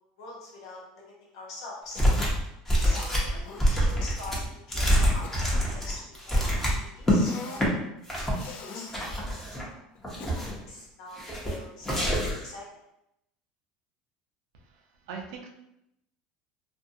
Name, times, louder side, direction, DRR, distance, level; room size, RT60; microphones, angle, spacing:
voice 1, 0.2-2.0 2.8-6.4 6.9-7.8 8.3-9.1 9.5-9.8 10.1-12.8, left 2 dB, 90° left, -3 dB, 0.9 m, -44 dB
Cough, 1.9-2.4 2.9-3.6 4.0-4.2 4.9-6.1 7.1-7.7 8.3-9.0 9.9-10.8 12.0-12.4, left 5 dB, 45° left, 0.4 m, -43 dB
sound 1, 2.0-2.4 2.7-7.2 7.5-7.7 8.1-8.5 8.9-9.7 10.0-10.6 11.2-11.6 11.8-12.5, equal, 10° left, 0.7 m, -26 dB
voice 2, 14.5-15.5, right 5 dB, 80° right, 2 dB, 0.5 m, -42 dB
2.5 x 2.2 x 2.6 m, 0.82 s
supercardioid pair, 120°, 3 cm